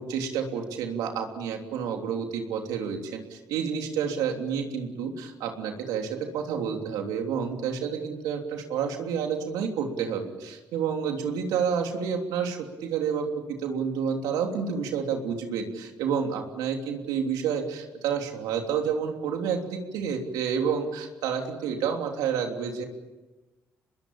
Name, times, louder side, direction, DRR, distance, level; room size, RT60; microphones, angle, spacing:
voice 1, 0.0-13.3 13.6-22.8, right 7 dB, 85° right, 3 dB, 3.3 m, -29 dB
25.5 x 21.0 x 8.9 m, 1.2 s
supercardioid pair, 70°, 6 cm